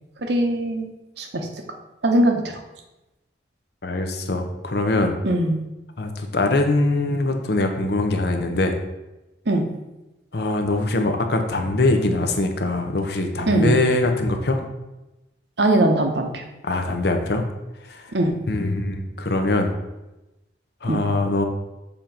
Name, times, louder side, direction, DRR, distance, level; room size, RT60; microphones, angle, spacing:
voice 1, 0.2-0.9 1.2-1.5 2.0-2.6 5.2-5.6 9.5-9.6 13.5-13.8 15.6-16.4 18.1-18.3 20.9-21.0, right 1 dB, 65° right, 4 dB, 0.9 m, -20 dB
voice 2, 3.8-5.1 6.0-8.8 10.3-14.6 16.6-17.4 17.9-18.1 18.5-19.7 20.8-21.4, left 2 dB, 60° left, 5 dB, 0.8 m, -22 dB
7.0 x 3.0 x 5.3 m, 0.99 s
head